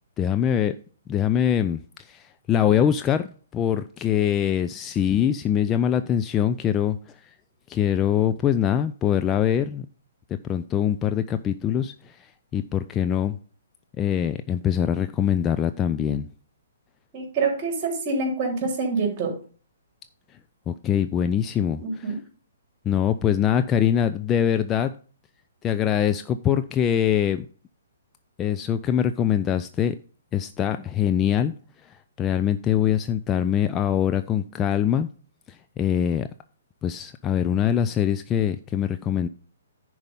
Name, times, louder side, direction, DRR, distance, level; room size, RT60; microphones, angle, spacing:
voice 1, 0.2-0.7 1.1-1.8 2.1-7.0 7.7-9.9 10.5-12.1 12.5-13.4 14.0-16.3 20.7-22.1 22.8-24.9 25.6-27.5 28.4-29.9 30.3-31.5 32.2-35.1 35.5-36.3 36.8-39.3, left 9 dB, 20° left, 0.4 m, -23 dB
voice 2, 17.1-19.3 21.8-22.1, right 4 dB, 30° right, 3.4 m, -26 dB
10.5 x 4.7 x 5.5 m
figure-of-eight pair, 125°, 0 cm